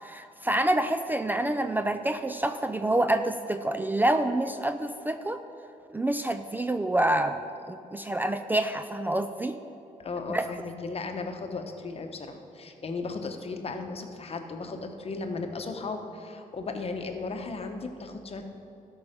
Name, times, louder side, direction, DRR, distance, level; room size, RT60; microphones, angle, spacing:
voice 1, 0.0-5.4 5.9-7.4 7.7-9.6 10.3-10.5, right 1 dB, 15° right, 8 dB, 0.4 m, -27 dB
voice 2, 10.0-18.4, left 3 dB, 45° left, 5 dB, 1.0 m, -36 dB
13.0 x 5.6 x 5.1 m, 2.9 s
cardioid pair, 75°, 14 cm